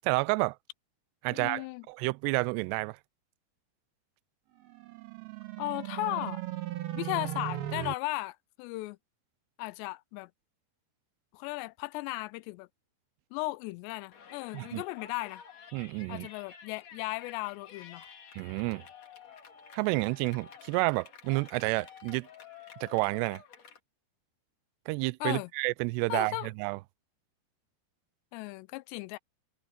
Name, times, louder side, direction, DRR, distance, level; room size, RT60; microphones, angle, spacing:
voice 1, 0.0-0.6 1.2-3.0 14.5-14.8 15.7-16.3 18.3-18.8 19.7-22.3 22.8-23.4 24.9-26.8, right 25 dB, 80° right, 2.6 m, -30 dB
voice 2, 1.3-1.8 5.6-6.4 6.9-9.0 9.6-10.3 11.3-12.7 13.3-15.4 16.1-18.1 25.2-25.5 26.1-26.5 28.3-29.2, left 21 dB, 85° left, 2.7 m, -36 dB
sound 1, 4.6-7.9, right 13 dB, 65° right, 3.5 m, -37 dB
Yell, 14.1-23.8, left 7 dB, 45° left, 2.9 m, -51 dB
open air
omnidirectional pair, 5.0 m